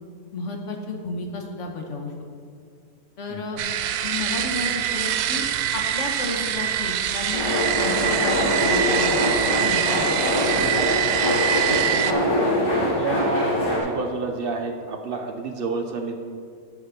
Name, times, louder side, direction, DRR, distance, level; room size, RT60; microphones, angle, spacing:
voice 1, 0.3-2.1 3.2-3.6 4.0-5.4 5.7-9.2 9.6-10.2, left 3 dB, 50° left, 2 dB, 1.3 m, -32 dB
sound 1, 3.6-12.1, right 10 dB, 80° right, 1.2 m, -24 dB
sound 2, 7.3-13.8, left 1 dB, 90° left, 2.7 m, -23 dB
voice 2, 12.1-16.2, right 4 dB, 55° right, 4 dB, 0.6 m, -30 dB
8.3 x 6.1 x 5.8 m, 2.2 s
omnidirectional pair, 1.8 m